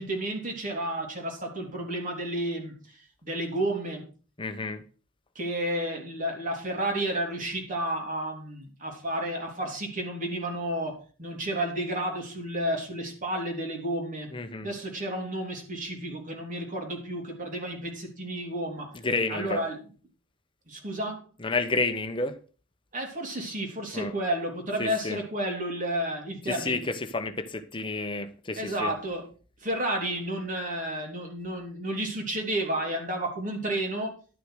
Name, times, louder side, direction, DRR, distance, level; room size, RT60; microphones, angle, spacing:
voice 1, 0.0-4.1 5.3-14.3 14.6-18.9 19.3-19.8 20.7-21.2 22.9-26.8 28.5-29.3 29.6-34.1, right 1 dB, 40° right, 3.4 m, -31 dB
voice 2, 4.4-4.8 14.3-14.7 19.0-19.6 21.4-22.4 23.9-24.1 24.8-25.2 26.5-28.9, left 3 dB, 25° left, 0.9 m, -30 dB
11.5 x 6.5 x 6.5 m
head